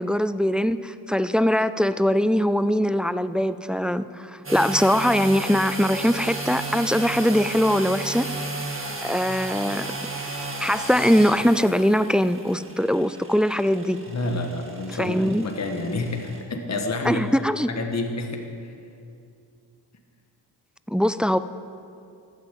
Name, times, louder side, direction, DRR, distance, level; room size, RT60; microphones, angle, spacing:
voice 1, 0.0-8.3 9.0-9.9 10.6-14.0 15.0-15.5 17.0-17.7 20.9-21.4, equal, ahead, 13 dB, 0.4 m, -22 dB
sound 1, 4.4-16.4, right 2 dB, 30° right, 2.1 m, -34 dB
voice 2, 14.1-15.2 15.4-17.2 17.7-18.7, left 2 dB, 40° left, 3 dB, 1.6 m, -29 dB
14.0 x 9.7 x 7.6 m, 2.5 s
cardioid pair, 85°, 42 cm